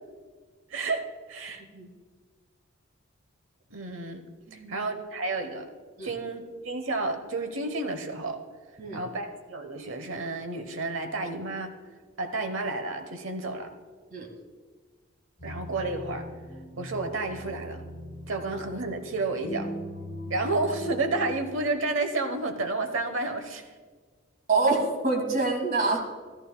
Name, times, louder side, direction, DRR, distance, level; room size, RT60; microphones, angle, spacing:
voice 1, 0.7-1.6 3.7-4.2 4.5-5.7 6.0-8.4 8.9-11.7 12.2-13.7 15.4-16.2 16.8-17.8 18.3-19.7 20.3-23.6, right 2 dB, 70° right, 7 dB, 1.1 m, -31 dB
sound 1, 15.4-21.3, equal, 55° left, 3.6 m, -39 dB
voice 2, 24.5-26.0, right 3 dB, 45° right, 2 dB, 1.7 m, -26 dB
14.0 x 13.5 x 2.3 m, 1.5 s
head